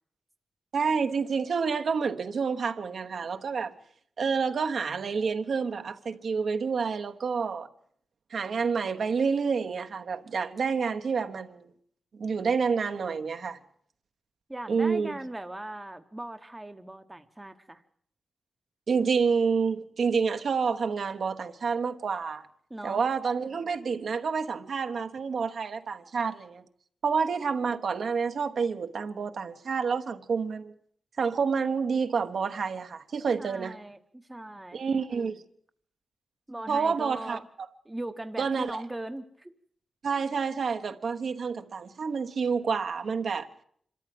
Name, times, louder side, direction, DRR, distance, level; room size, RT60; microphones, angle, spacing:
voice 1, 0.7-3.7 4.2-7.7 8.3-11.7 12.1-13.6 14.7-15.2 18.9-22.4 22.8-26.6 27.0-30.7 31.2-33.8 34.7-35.4 36.7-37.4 38.4-38.8 40.0-43.5, right 5 dB, 60° right, 1.1 m, -28 dB
voice 2, 14.5-17.8 22.7-23.0 33.4-34.8 36.5-37.5 37.8-39.5, right 1 dB, 10° right, 0.9 m, -39 dB
26.0 x 13.5 x 7.7 m
wide cardioid pair, 140°, 0 cm